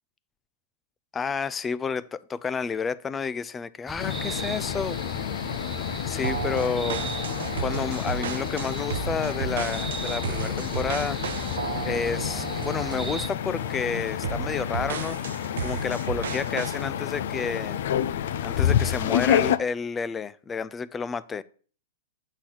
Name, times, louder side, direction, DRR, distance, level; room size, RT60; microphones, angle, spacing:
voice 1, 1.1-5.0 6.1-7.0 7.6-11.2 11.9-17.8 18.4-21.4, left 5 dB, 15° left, 0.4 m, -30 dB
sound 1, 3.9-13.3, right 3 dB, 10° right, 0.7 m, -38 dB
sound 2, 4.0-19.6, left 9 dB, 70° left, 0.5 m, -29 dB
sound 3, 6.2-13.2 13.6-13.8 14.2-16.8, right 8 dB, 80° right, 0.7 m, -34 dB
8.2 x 4.0 x 6.0 m
hypercardioid pair, 135°, 0 cm